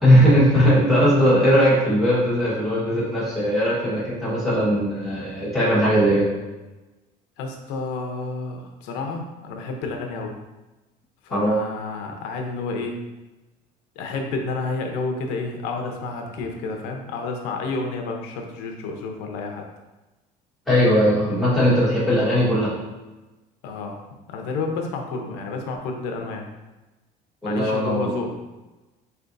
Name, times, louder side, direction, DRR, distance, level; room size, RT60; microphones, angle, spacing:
voice 1, 0.0-6.3 11.3-11.5 20.7-22.7 27.4-28.1, equal, ahead, -10 dB, 1.3 m, -19 dB
voice 2, 7.4-10.3 11.2-13.0 14.0-19.6 23.6-24.0 24.3-26.5 27.4-28.3, left 3 dB, 85° left, 3 dB, 0.7 m, -30 dB
4.3 x 3.4 x 2.6 m, 1.1 s
cardioid pair, 170°, 17 cm